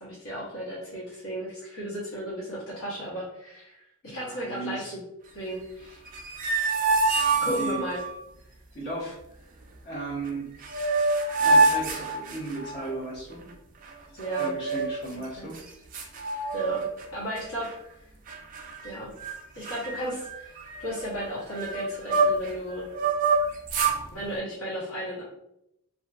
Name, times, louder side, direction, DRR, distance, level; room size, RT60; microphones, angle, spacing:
voice 1, 0.0-5.0 5.3-6.0 7.4-8.0 14.2-14.5 15.1-15.5 16.5-16.9 17.1-17.7 18.8-19.1 19.6-22.9 24.1-25.2, equal, 75° left, -7 dB, 0.7 m, -35 dB
voice 2, 4.0-4.9 7.4-7.8 8.7-9.2 9.8-10.5 11.4-13.5 14.4-15.6, right 1 dB, 50° left, -6 dB, 1.0 m, -35 dB
sound 1, 6.1-8.1 10.3-10.4 10.6-12.8 14.2-15.0 15.6-15.7 15.9-17.0 17.4-17.7 18.3-18.9 19.2-19.4 19.6-22.5 22.9-24.0, right 3 dB, 35° right, 0.3 m, -26 dB
2.5 x 2.3 x 2.3 m, 0.80 s
head